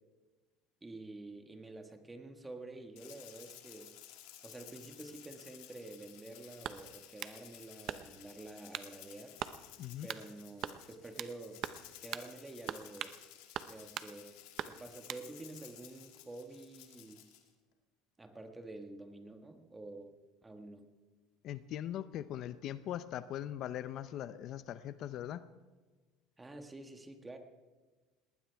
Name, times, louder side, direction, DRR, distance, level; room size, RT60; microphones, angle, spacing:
voice 1, 0.8-3.9 4.4-9.4 10.0-11.6 12.0-13.1 13.7-14.4 14.7-17.2 18.2-20.1 20.4-20.9 26.4-27.4, right 2 dB, 15° right, 5 dB, 1.7 m, -49 dB
Rattle (instrument), 3.0-17.5, left 12 dB, 80° left, 2.1 m, -55 dB
sound 1, 6.6-7.4 7.9-8.3 8.7-8.9 9.4-9.6 10.1-10.3 10.6-11.4 11.6-11.8 12.1-12.3 12.7-13.2 13.5-14.1 14.6-15.3, right 10 dB, 50° right, 0.7 m, -41 dB
voice 2, 21.4-25.4, left 11 dB, 55° left, 14 dB, 0.6 m, -40 dB
19.5 x 19.0 x 3.5 m, 1.3 s
supercardioid pair, 120°, 0 cm